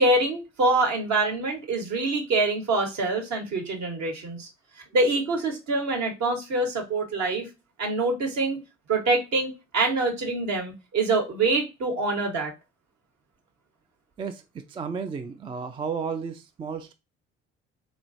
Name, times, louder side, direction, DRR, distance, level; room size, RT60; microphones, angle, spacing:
voice 1, 0.0-4.5 4.9-7.5 7.8-8.6 8.9-12.5, right 2 dB, 50° right, 1.3 m, -25 dB
voice 2, 14.2-16.9, right 6 dB, 15° right, 0.3 m, -33 dB
4.1 x 2.9 x 2.6 m
figure-of-eight pair, 50°, 34 cm